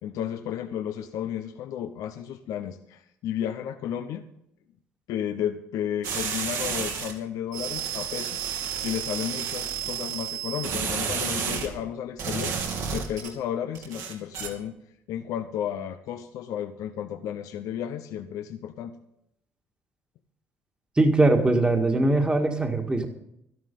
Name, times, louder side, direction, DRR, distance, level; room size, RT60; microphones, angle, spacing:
voice 1, 0.0-4.2 5.1-8.4 8.8-12.5 12.9-14.8 15.1-19.0, left 10 dB, 75° left, 8 dB, 0.9 m, -33 dB
sound 1, 6.0-7.1 7.5-11.7 12.2-13.3 13.7-14.5, right 7 dB, 75° right, 2.8 m, -31 dB
voice 2, 21.0-23.1, right 2 dB, 15° right, 3 dB, 1.8 m, -21 dB
12.5 x 11.5 x 5.3 m, 0.79 s
supercardioid pair, 75°, 6 cm